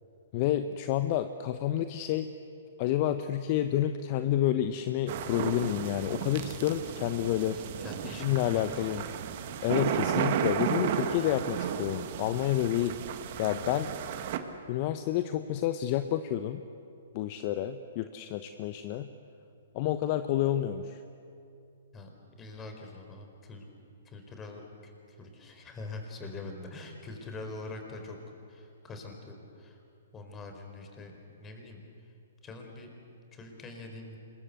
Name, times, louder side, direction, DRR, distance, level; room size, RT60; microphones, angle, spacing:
voice 1, 0.3-2.3 2.8-7.6 8.1-9.0 9.6-13.0 13.4-13.9 14.7-16.6 17.1-19.1 19.7-21.0, left 12 dB, 40° left, 10 dB, 1.0 m, -29 dB
sound 1, 5.1-14.4, right 9 dB, 50° right, 1.8 m, -34 dB
voice 2, 7.5-8.9 21.9-22.1 22.4-23.6 24.0-28.2 28.5-29.8 30.1-32.1 32.4-32.9 33.3-34.2, left 2 dB, 20° left, 4 dB, 4.4 m, -44 dB
26.0 x 22.0 x 8.2 m, 2.6 s
hypercardioid pair, 130°, 0 cm